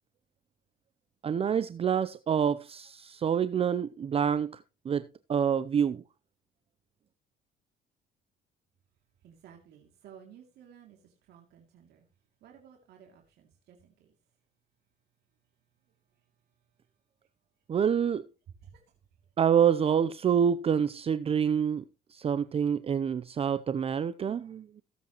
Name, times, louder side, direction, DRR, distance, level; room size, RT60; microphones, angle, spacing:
voice 1, 1.2-6.0 17.7-18.2 19.4-21.8 22.1-24.8, right 8 dB, 35° right, 0.6 m, -27 dB
voice 2, 9.2-12.1 12.4-14.1 18.6-18.8, right 8 dB, 75° right, 2.7 m, -55 dB
17.5 x 8.3 x 3.0 m
cardioid pair, 110°, 17 cm